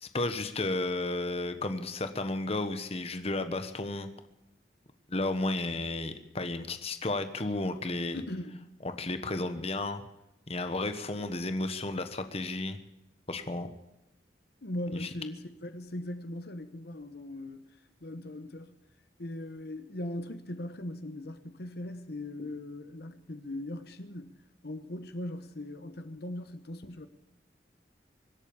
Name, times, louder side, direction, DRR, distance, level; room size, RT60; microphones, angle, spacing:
voice 1, 0.0-4.1 5.1-8.2 8.8-10.0 10.5-12.8 13.3-13.7 15.0-15.1, left 2 dB, 35° left, 1.3 m, -33 dB
voice 2, 8.1-8.7 11.0-11.1 14.6-18.8 19.2-27.1, left 1 dB, 60° left, 1.1 m, -40 dB
24.5 x 8.3 x 7.0 m
head